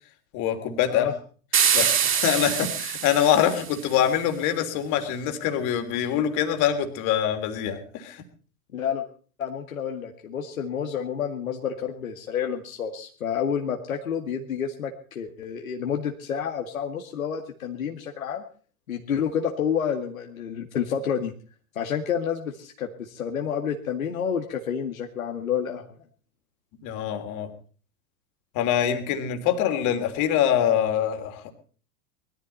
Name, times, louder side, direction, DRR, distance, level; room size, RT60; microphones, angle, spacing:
voice 1, 0.3-1.1 1.7-8.2 26.8-27.5 28.5-31.5, left 9 dB, 45° left, 6 dB, 3.2 m, -24 dB
sound 1, 1.5-3.9, right 8 dB, 30° right, 4.5 m, -24 dB
voice 2, 8.7-9.0 9.4-18.4 18.9-21.3 21.8-25.8, left 8 dB, 70° left, 3 dB, 2.0 m, -29 dB
21.0 x 14.0 x 4.2 m, 0.42 s
figure-of-eight pair, 90°, 43 cm